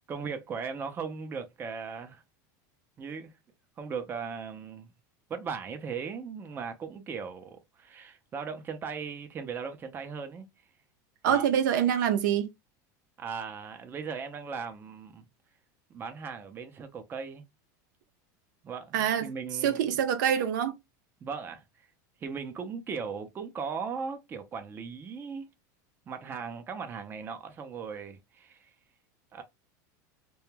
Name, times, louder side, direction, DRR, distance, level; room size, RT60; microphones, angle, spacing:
voice 1, 0.1-2.2 3.0-3.3 3.8-4.9 5.3-10.5 11.3-11.4 13.2-15.3 15.9-17.4 18.6-19.9 21.2-21.9 22.2-25.5 26.1-28.7 29.3-29.4, right 5 dB, 20° right, 0.4 m, -38 dB
voice 2, 11.2-12.5 18.9-19.3 19.6-20.7, right 9 dB, 80° right, 0.5 m, -25 dB
2.2 x 2.1 x 3.1 m
supercardioid pair, 135°, 10 cm